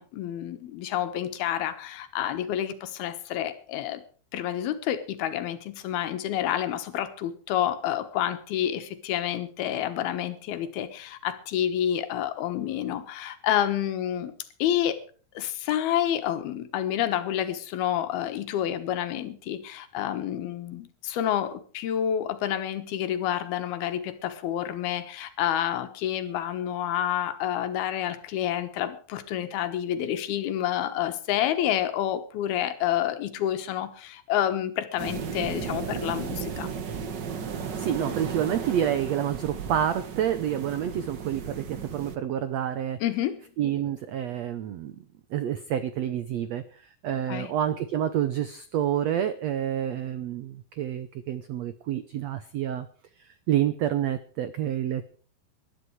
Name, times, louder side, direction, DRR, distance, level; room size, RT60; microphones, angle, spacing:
voice 1, 0.0-4.0 4.3-14.3 14.6-15.0 15.3-36.7 43.0-43.4 47.3-47.5, left 11 dB, 90° left, 10 dB, 3.3 m, -29 dB
sound 1, 35.0-42.2, right 6 dB, 75° right, 1.0 m, -35 dB
voice 2, 37.8-43.0 43.6-45.0 45.3-52.9 53.2-55.1, right 10 dB, 90° right, 12 dB, 1.5 m, -28 dB
20.0 x 12.0 x 4.7 m, 0.42 s
omnidirectional pair, 4.3 m